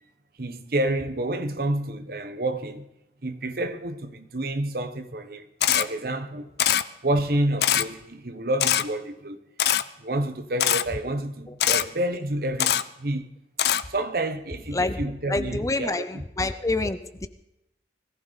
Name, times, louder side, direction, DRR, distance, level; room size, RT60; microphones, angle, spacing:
voice 1, 0.4-2.9 3.2-5.5 5.7-6.5 7.0-9.4 10.0-13.3 13.9-16.2, right 1 dB, 55° right, 1.1 m, -29 dB
Camera, 5.6-5.8 6.6-6.8 7.6-7.8 8.6-8.8 9.6-9.8 10.6-10.8 11.6-11.8 12.6-12.8 13.6-13.8, left 10 dB, 60° left, 0.5 m, -21 dB
voice 2, 15.3-17.3, left 2 dB, 20° left, 0.5 m, -27 dB
21.0 x 15.0 x 4.1 m
head